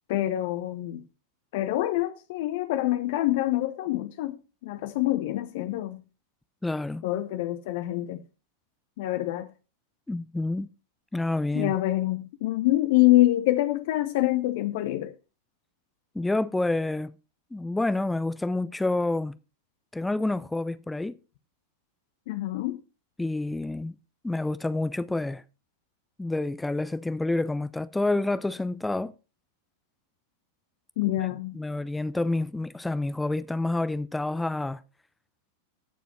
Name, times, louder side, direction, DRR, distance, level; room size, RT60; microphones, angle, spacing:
voice 1, 0.1-1.0 1.5-4.4 4.6-6.0 7.0-8.2 9.0-9.5 11.5-15.1 22.3-22.8 31.0-31.6, left 16 dB, 50° left, 0.7 m, -26 dB
voice 2, 6.6-7.0 10.1-10.7 11.1-11.7 16.1-17.1 17.5-19.3 19.9-21.2 23.2-24.0 24.2-25.4 26.2-29.1 31.2-31.3 31.5-34.8, left 2 dB, 5° left, 0.5 m, -28 dB
16.5 x 7.0 x 3.1 m
figure-of-eight pair, 90°, 0 cm